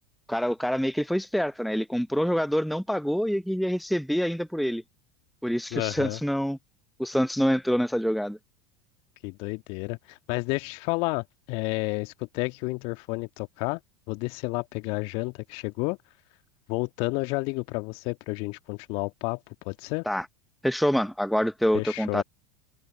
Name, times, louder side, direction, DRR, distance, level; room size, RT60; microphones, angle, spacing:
voice 1, 0.3-4.8 5.4-6.6 7.0-8.4 20.1-20.3 20.6-22.2, equal, ahead, 0.8 m, -26 dB
voice 2, 5.7-6.2 9.2-13.8 14.1-16.0 16.7-19.4 19.7-20.1 21.7-22.2, left 28 dB, 55° left, 1.6 m, -31 dB
figure-of-eight pair, 80°, 11 cm